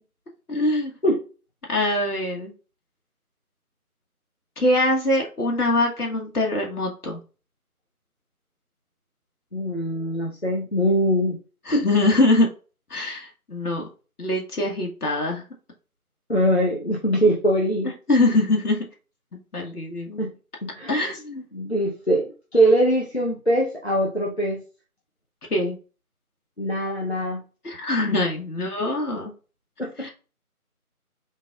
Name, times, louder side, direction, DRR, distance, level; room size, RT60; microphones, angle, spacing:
voice 1, 0.5-0.9 1.7-2.5 4.6-7.2 11.7-12.5 12.9-13.9 14.2-15.4 18.1-18.8 19.3-20.2 20.9-21.4 25.5-25.8 27.6-29.3 30.0-30.1, left 2 dB, 80° left, 0 dB, 1.2 m, -23 dB
voice 2, 9.5-11.4 11.7-11.9 16.3-17.9 20.2-20.3 20.6-21.1 21.5-24.6 26.6-27.4 29.8-30.1, right 1 dB, 45° left, -1 dB, 0.5 m, -22 dB
4.0 x 3.3 x 2.3 m, 0.35 s
figure-of-eight pair, 170°, 45 cm